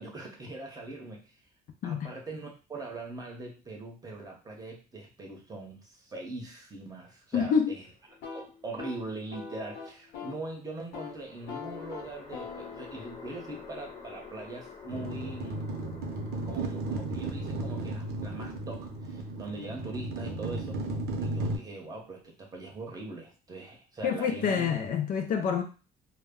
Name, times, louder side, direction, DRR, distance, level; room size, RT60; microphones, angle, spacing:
voice 1, 0.0-1.3 1.8-7.8 8.3-15.6 16.4-20.8 21.2-24.7, right 2 dB, 20° right, 0.8 m, -41 dB
voice 2, 7.3-7.7 24.0-25.6, left 7 dB, 55° left, 0.4 m, -27 dB
sound 1, 7.8-8.7 10.9-22.3, left 5 dB, 35° left, 0.8 m, -51 dB
sound 2, 8.1-10.5 10.8-11.2 11.5-15.3, left 6 dB, 85° left, 0.9 m, -44 dB
sound 3, 14.9-21.6, right 2 dB, 70° right, 0.6 m, -34 dB
2.1 x 2.0 x 3.5 m
cardioid pair, 110°, 17 cm